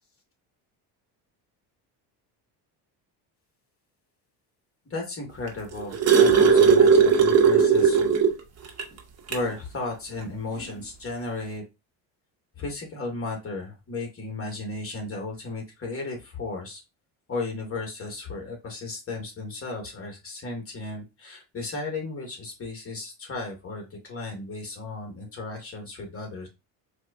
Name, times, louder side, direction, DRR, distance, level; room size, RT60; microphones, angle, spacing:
voice 1, 4.9-8.1 9.3-11.6 12.6-16.8 17.3-26.5, left 3 dB, 30° left, 1 dB, 1.7 m, -35 dB
sound 1, 5.5-8.4 8.8-8.9 9.3-9.5 10.6-10.7, right 6 dB, 35° right, 1.0 m, -17 dB
4.5 x 2.3 x 2.5 m, 0.25 s
supercardioid pair, 95°, 44 cm